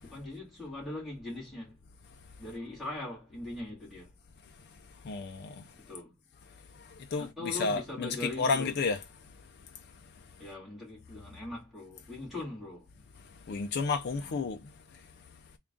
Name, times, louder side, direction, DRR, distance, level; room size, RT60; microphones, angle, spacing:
voice 1, 0.0-1.8 2.4-4.1 5.7-6.1 7.2-8.8 10.4-12.9 14.1-14.4, left 2 dB, ahead, 1.9 m, -41 dB
voice 2, 5.1-5.6 7.1-9.0 13.5-14.6, left 4 dB, 50° left, 0.4 m, -31 dB
3.8 x 2.3 x 3.5 m
head